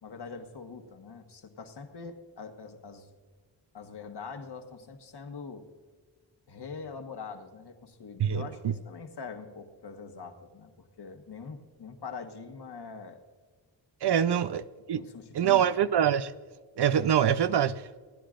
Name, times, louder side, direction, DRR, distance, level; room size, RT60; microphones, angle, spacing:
voice 1, 0.0-3.1 3.7-5.6 6.5-13.2 14.1-14.4 14.9-15.7, left 5 dB, 60° left, 1.5 m, -43 dB
voice 2, 8.2-8.7 14.0-14.6 14.9-15.0 15.3-16.3 16.8-18.0, right 9 dB, 60° right, 0.6 m, -25 dB
27.5 x 10.0 x 2.5 m
cardioid pair, 55°, 45 cm